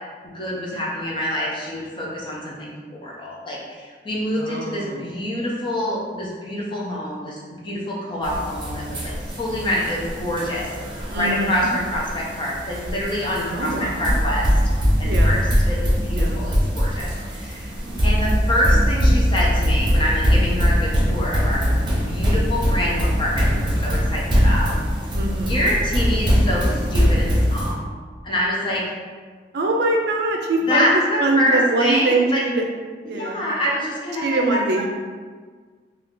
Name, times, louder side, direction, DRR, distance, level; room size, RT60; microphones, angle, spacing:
voice 1, 0.3-14.5 15.0-17.7 18.0-21.7 22.0-24.7 25.4-27.8 28.2-28.9 30.7-32.4 33.1-34.6, equal, 30° left, -4 dB, 0.6 m, -26 dB
voice 2, 4.4-5.1 11.1-11.7 13.5-14.2 15.0-15.5 16.2-16.4 17.8-18.1 25.1-25.7 29.5-32.6 33.0-33.4 34.2-34.9, right 2 dB, 65° right, 1 dB, 0.4 m, -23 dB
sound 1, 8.2-27.7, equal, 25° right, 0.7 m, -21 dB
2.7 x 2.4 x 3.6 m, 1.5 s
head